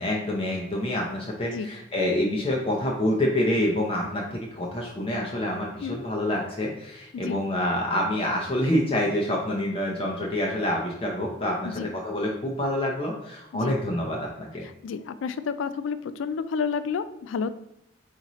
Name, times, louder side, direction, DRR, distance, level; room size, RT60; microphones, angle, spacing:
voice 1, 0.0-14.6, left 1 dB, 30° left, -2 dB, 0.6 m, -27 dB
voice 2, 14.8-17.5, left 6 dB, 90° left, 12 dB, 0.3 m, -30 dB
4.2 x 4.0 x 3.0 m, 0.80 s
head